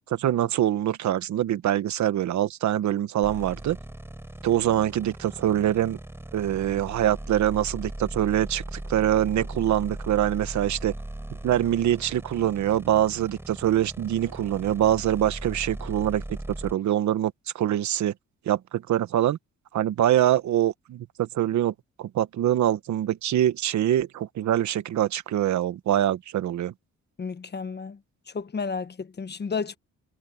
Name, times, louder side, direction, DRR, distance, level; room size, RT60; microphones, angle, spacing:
voice 1, 0.1-3.8 4.4-6.0 6.3-10.9 11.4-18.1 18.4-19.4 19.7-26.7, right 11 dB, 70° right, 1.2 m, -24 dB
sound 1, 3.2-16.7, right 1 dB, 10° right, 5.7 m, -38 dB
voice 2, 27.2-28.0 28.3-29.8, left 5 dB, 35° left, 1.4 m, -32 dB
cardioid pair, 90°, 30 cm